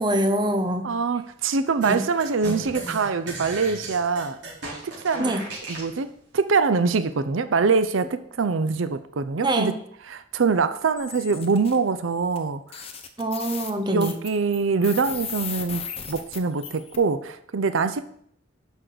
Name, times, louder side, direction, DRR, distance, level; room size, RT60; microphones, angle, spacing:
voice 1, 0.0-0.9 1.8-2.0 5.2-5.4 9.4-9.8 13.2-14.1, right 1 dB, 25° right, 6 dB, 0.9 m, -24 dB
voice 2, 0.8-4.4 5.0-5.3 5.7-6.1 6.3-9.7 10.0-12.6 13.9-18.0, right 4 dB, 85° right, 12 dB, 0.6 m, -24 dB
sound 1, 1.8-5.9, right 2 dB, 65° right, 3.9 m, -36 dB
sound 2, 11.0-11.8 12.4-12.5 12.7-17.0, left 8 dB, 30° left, 0.9 m, -36 dB
11.0 x 6.2 x 4.0 m, 0.68 s
head